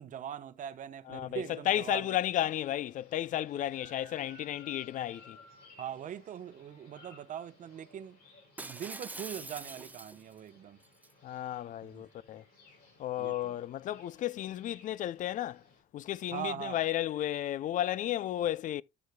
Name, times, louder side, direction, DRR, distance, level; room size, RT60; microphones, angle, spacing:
voice 1, 0.0-2.2 5.8-8.2 8.6-10.8 11.8-12.0 13.2-13.6 16.3-16.8, right 9 dB, 50° right, 0.9 m, -41 dB
voice 2, 1.1-5.4 11.2-12.4 13.0-15.6 15.9-18.8, left 12 dB, 50° left, 0.4 m, -33 dB
sound 1, 1.8-15.8, left 2 dB, 80° left, 6.1 m, -59 dB
Shatter, 8.6-10.4 10.8-11.1, right 2 dB, 10° right, 0.6 m, -44 dB
13.0 x 6.3 x 2.2 m
cardioid pair, 110°, 17 cm